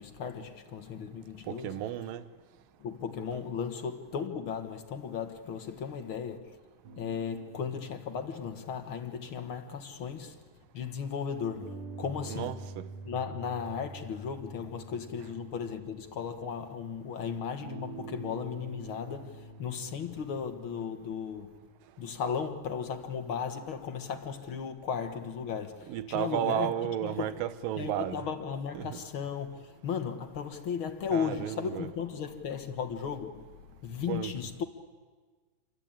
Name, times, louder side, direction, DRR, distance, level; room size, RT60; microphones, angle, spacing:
voice 1, 0.0-1.8 2.8-6.6 7.0-10.4 10.7-12.6 13.0-21.6 22.0-26.7 27.0-27.4 27.8-34.6, left 6 dB, 55° left, 1.5 m, -36 dB
voice 2, 1.5-2.2 12.3-12.9 25.9-28.2 28.7-28.9 31.1-31.9 34.1-34.3, right 11 dB, 75° right, 2.7 m, -33 dB
sound 1, 6.8-10.8 11.5-16.6 17.6-21.8, right 3 dB, 50° right, 2.1 m, -47 dB
28.0 x 23.5 x 8.9 m
omnidirectional pair, 4.1 m